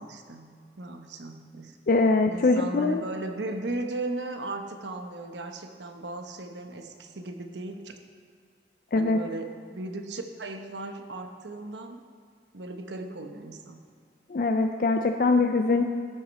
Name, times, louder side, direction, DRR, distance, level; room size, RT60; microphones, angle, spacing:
voice 1, 0.0-1.8 2.3-8.0 8.9-12.0 12.5-13.8, right 2 dB, 80° right, 6 dB, 0.9 m, -37 dB
voice 2, 1.9-3.0 8.9-9.2 14.3-15.9, left 3 dB, 50° left, 5 dB, 0.4 m, -23 dB
13.0 x 7.8 x 4.1 m, 2.2 s
head